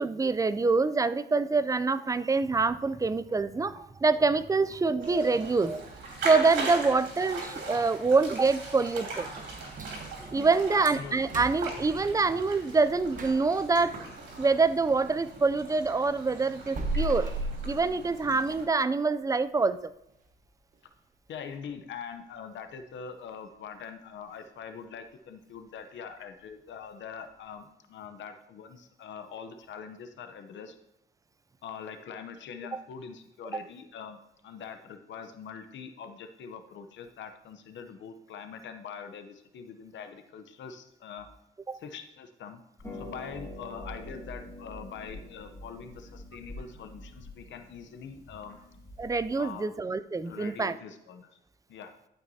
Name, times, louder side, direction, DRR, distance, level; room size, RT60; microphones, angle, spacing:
voice 1, 0.0-5.8 6.2-9.3 10.3-14.0 14.4-17.3 17.6-19.9 32.7-32.8 33.5-33.6 41.7-41.8 49.0-50.8, right 4 dB, 15° right, 14 dB, 0.4 m, -26 dB
sound 1, 5.0-18.7, right 3 dB, 65° right, 3.1 m, -40 dB
sound 2, 9.4-15.3 15.7-18.5 18.9-19.0 19.5-19.6 20.1-20.4 20.7-20.8 21.4-21.5, right 2 dB, 40° right, 1.1 m, -38 dB
voice 2, 10.7-11.4 18.3-18.4 21.3-30.8 31.6-41.3 41.7-42.6 42.9-48.6 49.4-49.7 50.2-51.3 51.7-51.9, left 6 dB, 70° left, 8 dB, 0.8 m, -43 dB
Harp, 42.8-49.5, left 1 dB, 15° left, 2.5 m, -45 dB
12.0 x 5.8 x 2.8 m, 0.82 s
cardioid pair, 90°, 20 cm